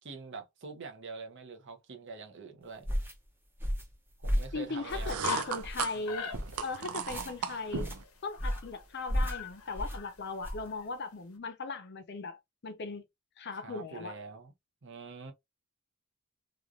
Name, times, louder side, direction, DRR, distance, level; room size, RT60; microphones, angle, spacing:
voice 1, 0.0-2.9 4.2-5.5 6.0-6.1 13.5-14.5 14.8-15.3, right 4 dB, 55° right, 0.8 m, -45 dB
sound 1, 2.8-3.1 3.6-3.9 4.2-4.5 4.9-5.3 5.6-5.8 6.3-6.6 7.0-7.3 7.7-8.0 8.4-8.7 9.1-9.4 9.8-10.0 10.4-10.7, equal, 10° right, 0.7 m, -33 dB
voice 2, 4.5-6.3 6.6-7.9 8.2-12.4 12.6-13.0 13.4-14.2, left 3 dB, 50° left, 0.7 m, -38 dB
sound 2, 4.7-8.0, right 7 dB, 85° right, 0.5 m, -37 dB
sound 3, 5.2-5.8 6.1-7.0 7.2-7.3 7.5-8.9 9.1-10.9, left 5 dB, 80° left, 0.9 m, -40 dB
3.1 x 2.4 x 2.4 m
head